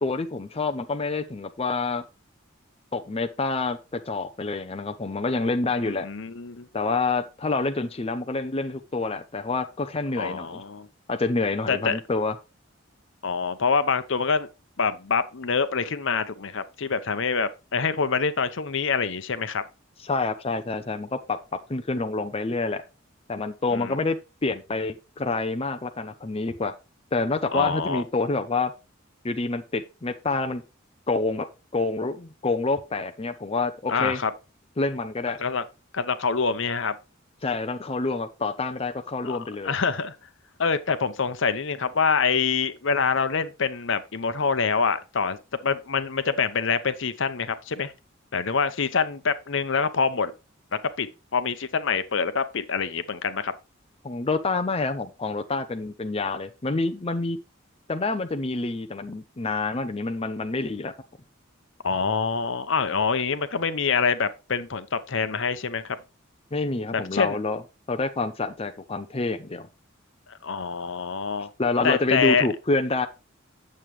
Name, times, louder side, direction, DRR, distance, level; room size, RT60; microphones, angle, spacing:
voice 1, 0.0-2.0 2.9-6.1 6.7-10.6 11.1-12.3 20.0-21.4 21.7-22.8 23.3-26.7 27.1-28.7 29.2-30.6 31.1-31.5 31.7-34.2 34.8-35.4 37.4-39.7 54.0-57.4 57.9-60.9 66.5-67.6 67.9-69.7 71.6-73.1, left 3 dB, 30° left, 0.6 m, -27 dB
voice 2, 5.8-6.7 10.2-10.9 11.7-12.0 13.2-14.5 14.8-19.6 23.7-24.0 27.5-28.0 33.9-34.3 35.4-35.6 35.9-36.9 39.2-40.1 40.6-45.4 45.6-47.9 48.3-50.3 51.0-53.5 61.8-66.0 66.9-67.4 70.4-71.5 71.8-72.5, left 5 dB, 65° left, 0.8 m, -25 dB
8.9 x 7.5 x 3.2 m
head